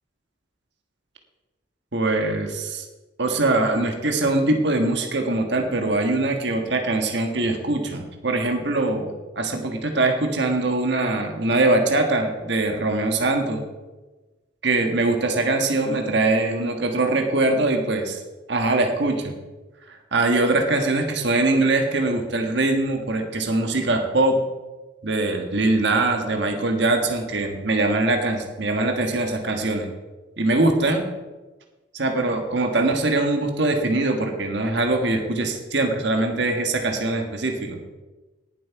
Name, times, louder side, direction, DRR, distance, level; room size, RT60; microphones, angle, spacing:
voice 1, 1.9-2.8 3.2-13.6 14.6-18.2 18.5-19.3 19.9-24.4 25.0-29.9 30.4-31.0 31.9-37.8, right 2 dB, 60° right, 4 dB, 1.4 m, -22 dB
18.0 x 7.6 x 4.7 m, 1.2 s
head